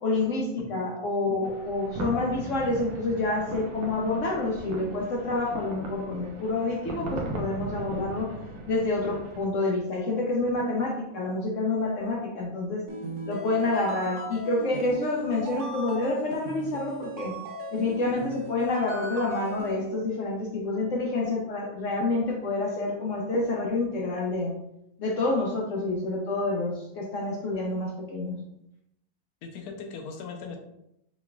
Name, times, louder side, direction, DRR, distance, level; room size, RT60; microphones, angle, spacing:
voice 1, 0.0-8.3 8.7-12.9 13.2-17.3 17.7-24.5 25.0-28.4, left 2 dB, 65° left, -2 dB, 0.9 m, -28 dB
sound 1, 1.4-9.5, right 1 dB, 70° right, 1.1 m, -38 dB
sound 2, 12.9-19.7, equal, 85° right, 1.3 m, -38 dB
voice 2, 29.4-30.6, left 5 dB, 90° left, 4 dB, 1.2 m, -39 dB
4.2 x 3.1 x 2.3 m, 0.81 s
omnidirectional pair, 1.6 m